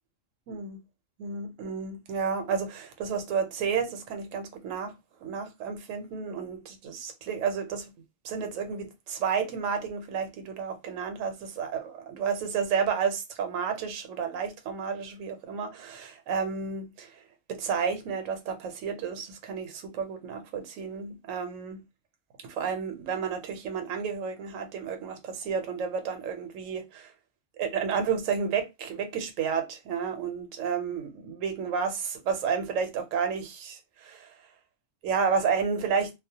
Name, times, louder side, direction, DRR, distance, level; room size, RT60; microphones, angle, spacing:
voice 1, 0.5-0.8 1.2-4.9 5.2-7.9 8.2-17.1 17.5-21.8 22.4-27.1 27.6-34.3 35.0-36.1, right 6 dB, 80° right, 1.0 m, -31 dB
2.3 x 2.1 x 2.7 m
omnidirectional pair, 1.3 m